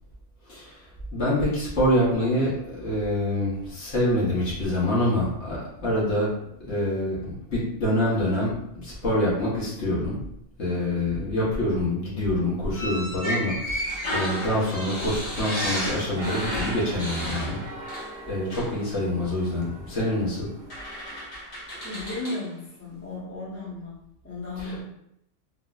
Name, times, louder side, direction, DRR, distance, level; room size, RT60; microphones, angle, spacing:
voice 1, 0.4-6.3 6.6-10.2 10.6-20.5 24.6-24.7, left 1 dB, 70° left, -7 dB, 1.3 m, -26 dB
voice 2, 10.7-11.1 21.8-24.8, left 2 dB, 15° left, -7 dB, 0.7 m, -35 dB
sound 1, 12.7-18.2 18.5-18.7 20.0-20.1 20.7-22.4, equal, 85° left, 1.6 m, -32 dB
sound 2, 16.2-21.2, right 2 dB, 75° right, 0.9 m, -41 dB
3.7 x 2.0 x 2.4 m, 0.77 s
omnidirectional pair, 1.3 m